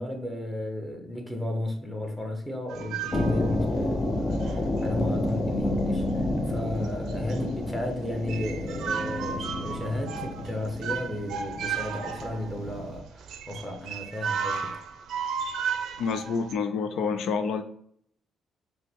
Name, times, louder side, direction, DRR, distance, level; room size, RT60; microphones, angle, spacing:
voice 1, 0.0-6.0 6.5-14.8, left 1 dB, 10° left, 1.0 m, -34 dB
sound 1, 2.7-3.8 4.3-4.9 5.2-5.3 6.4-6.5 6.8-7.6 7.9-8.0 8.3-16.5, right 7 dB, 75° right, 0.5 m, -34 dB
sound 2, 3.1-13.0, left 1 dB, 30° left, 0.6 m, -30 dB
voice 2, 16.0-17.6, left 5 dB, 75° left, 0.4 m, -28 dB
5.4 x 2.2 x 3.4 m
cardioid pair, 90°, 0 cm